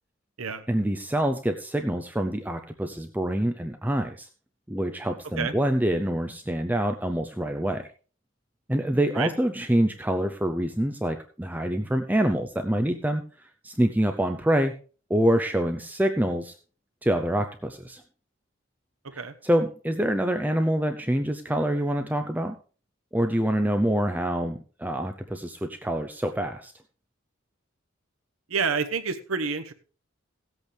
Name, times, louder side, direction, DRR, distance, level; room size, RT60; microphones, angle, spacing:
voice 1, 0.7-4.3 4.7-7.9 8.7-13.2 13.6-14.7 15.1-16.5 17.0-18.0 19.1-22.5 23.1-26.7, right 1 dB, 10° right, 6 dB, 0.5 m, -26 dB
voice 2, 28.5-29.7, right 5 dB, 85° right, 9 dB, 1.0 m, -28 dB
17.0 x 8.1 x 3.4 m, 0.38 s
head